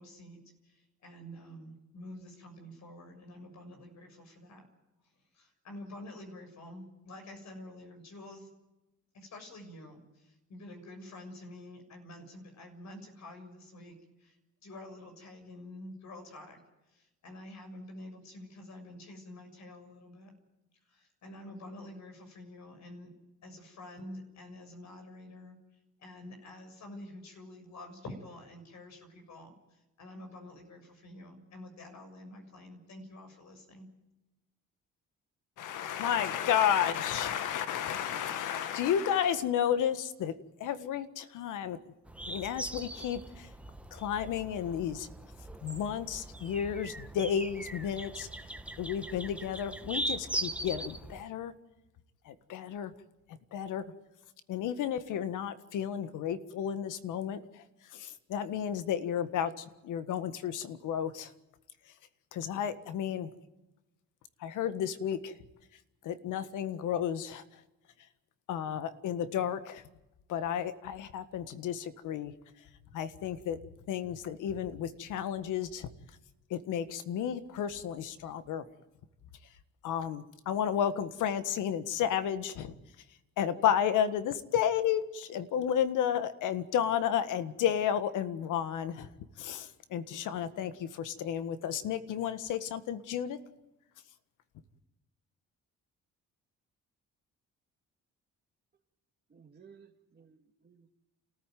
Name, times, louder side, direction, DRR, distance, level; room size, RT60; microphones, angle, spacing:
voice 1, 0.0-4.6 5.3-8.5 9.1-14.4 14.6-16.6 16.9-20.3 20.8-23.1 23.4-25.6 26.0-33.9, left 1 dB, 65° left, 5 dB, 6.9 m, -48 dB
voice 2, 35.6-40.3 40.6-41.8 42.3-43.5 43.9-45.1 45.6-48.3 48.8-51.5 52.2-52.9 53.5-53.8 54.5-57.6 57.9-61.3 62.3-63.3 64.4-65.3 66.0-67.4 68.5-69.8 70.3-72.3 72.9-73.6 73.9-75.9 76.5-78.6 79.8-82.7 83.4-89.1 89.4-93.4, left 9 dB, 85° left, 12 dB, 1.7 m, -32 dB
sound 1, 42.1-51.2, right 1 dB, 5° right, 1.5 m, -40 dB
voice 3, 99.3-100.9, right 6 dB, 35° right, -2 dB, 2.4 m, -58 dB
29.0 x 14.5 x 9.3 m, 1.0 s
cardioid pair, 90°, 30 cm